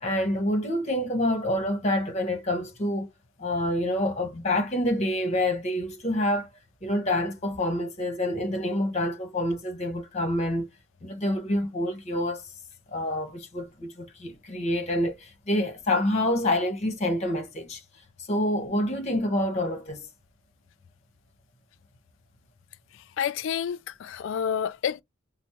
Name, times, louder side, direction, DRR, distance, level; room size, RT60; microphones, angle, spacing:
voice 1, 0.0-3.1 3.4-6.5 6.8-10.7 11.0-12.5 12.9-17.8 18.3-20.1, left 1 dB, 35° left, 0.9 m, -27 dB
voice 2, 23.2-25.0, left 8 dB, 70° left, 0.3 m, -29 dB
4.9 x 2.0 x 2.9 m
head